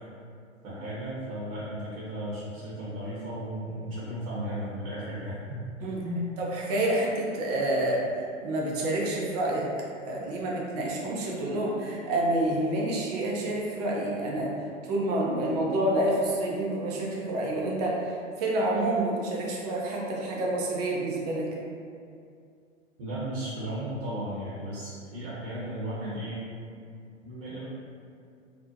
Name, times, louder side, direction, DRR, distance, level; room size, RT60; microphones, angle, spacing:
voice 1, 0.6-5.6 6.0-6.2 23.0-26.5 27.2-27.6, right 1 dB, 50° right, -9 dB, 0.9 m, -35 dB
voice 2, 6.4-8.0 8.4-9.7 10.1-14.5 14.8-21.5, right 1 dB, 35° right, -3 dB, 0.5 m, -28 dB
2.6 x 2.0 x 2.6 m, 2.4 s
figure-of-eight pair, 110°, 39 cm